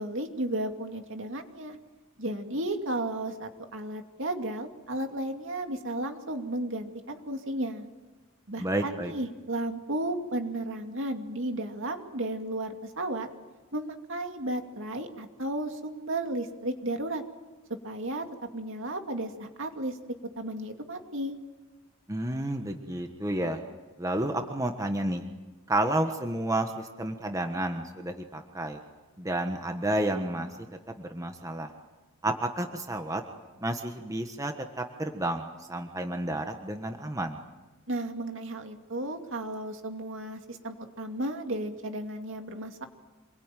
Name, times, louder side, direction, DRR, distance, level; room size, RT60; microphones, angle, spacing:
voice 1, 0.0-1.8 2.2-7.9 8.5-13.3 13.7-17.2 17.8-18.2 18.5-20.0 20.4-21.4 37.9-42.9, right 1 dB, 60° right, 5 dB, 2.6 m, -34 dB
voice 2, 8.6-9.1 22.1-23.6 24.0-25.2 25.7-28.8 29.2-30.5 31.0-31.7 32.2-33.2 33.6-37.4, right 1 dB, 15° right, 5 dB, 1.4 m, -31 dB
27.0 x 22.0 x 9.2 m, 1.2 s
head